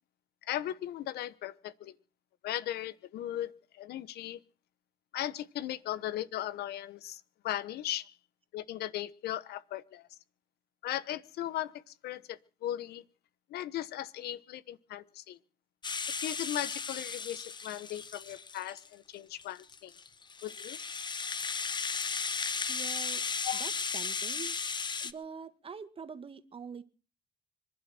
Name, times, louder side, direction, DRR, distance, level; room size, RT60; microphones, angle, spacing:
voice 1, 0.4-1.9 2.4-4.4 5.1-8.1 8.5-10.1 10.8-13.0 13.5-15.4 16.2-19.9 20.4-20.8 23.4-23.6, left 13 dB, 70° left, 18 dB, 1.1 m, -37 dB
Rattle (instrument), 15.8-18.9 19.4-25.1, left 5 dB, 25° left, 0.9 m, -35 dB
voice 2, 22.7-23.2 23.6-24.6 25.0-26.8, right 6 dB, 35° right, 11 dB, 1.8 m, -44 dB
25.5 x 11.5 x 4.3 m, 0.36 s
cardioid pair, 110°, 17 cm